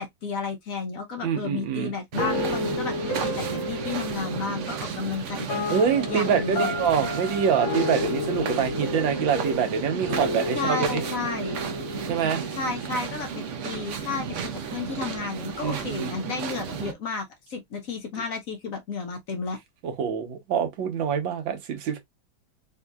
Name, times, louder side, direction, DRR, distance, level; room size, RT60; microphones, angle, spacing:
voice 1, 0.0-5.5 6.1-6.7 10.5-11.6 12.6-19.6, left 4 dB, 60° left, 1.0 m, -32 dB
voice 2, 1.2-1.9 5.7-11.0 12.1-12.4 15.6-16.1 19.8-22.0, right 7 dB, 80° right, 1.7 m, -25 dB
sound 1, 2.1-16.9, right 6 dB, 65° right, 0.7 m, -33 dB
sound 2, 2.2-13.3, left 2 dB, 90° left, 1.9 m, -32 dB
4.3 x 2.7 x 2.3 m
omnidirectional pair, 2.1 m